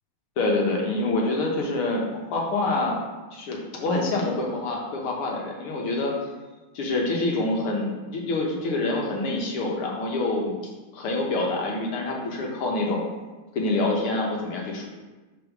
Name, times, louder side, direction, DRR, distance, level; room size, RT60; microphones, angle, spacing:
voice 1, 0.4-3.0 3.3-6.1 6.7-10.5 10.9-13.0 13.5-14.9, left 2 dB, 75° left, -1 dB, 2.1 m, -26 dB
5.4 x 4.4 x 5.9 m, 1.2 s
omnidirectional pair, 2.4 m